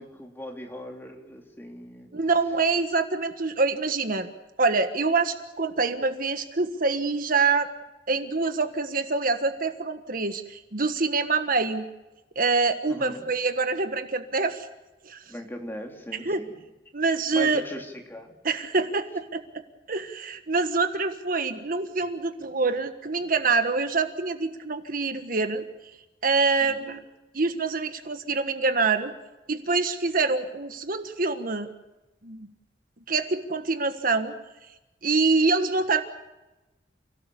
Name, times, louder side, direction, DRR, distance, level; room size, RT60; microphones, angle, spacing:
voice 1, 0.0-2.1 12.9-13.3 15.3-16.6 17.3-18.3 26.6-26.8, equal, 15° left, 1 dB, 3.2 m, -39 dB
voice 2, 2.1-4.3 4.6-7.7 8.1-11.9 12.3-14.7 15.0-15.2 16.2-16.4 16.9-17.6 18.4-19.4 19.9-25.6 26.2-27.0 27.3-29.1 29.5-31.7 32.2-32.5 33.1-34.3 35.0-36.0, right 4 dB, 55° right, 8 dB, 1.4 m, -25 dB
29.5 x 17.5 x 7.0 m, 1.0 s
head